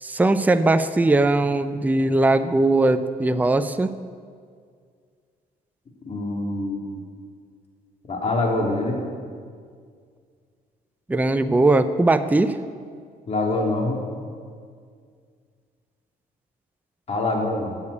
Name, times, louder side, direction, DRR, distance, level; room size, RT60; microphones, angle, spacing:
voice 1, 0.0-3.9 11.1-12.6, right 2 dB, 10° right, 10 dB, 0.6 m, -20 dB
voice 2, 6.0-7.0 8.1-9.0 13.3-14.0 17.1-17.8, left 2 dB, 40° left, 0 dB, 3.0 m, -25 dB
12.5 x 8.8 x 8.6 m, 2.1 s
cardioid pair, 105°, 16 cm